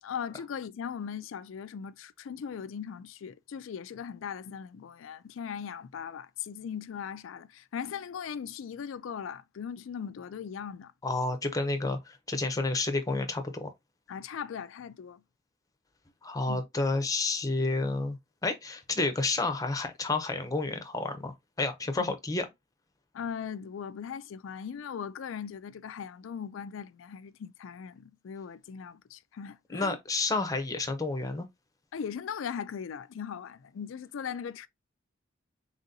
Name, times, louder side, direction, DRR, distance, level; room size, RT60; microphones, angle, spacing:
voice 1, 0.0-10.9 14.1-15.2 16.5-16.6 22.0-22.1 23.1-30.0 31.9-34.7, left 7 dB, 75° left, 0.4 m, -39 dB
voice 2, 11.0-13.7 16.2-18.2 18.4-22.5 29.7-31.5, left 3 dB, 20° left, 0.7 m, -30 dB
4.0 x 3.6 x 2.6 m
head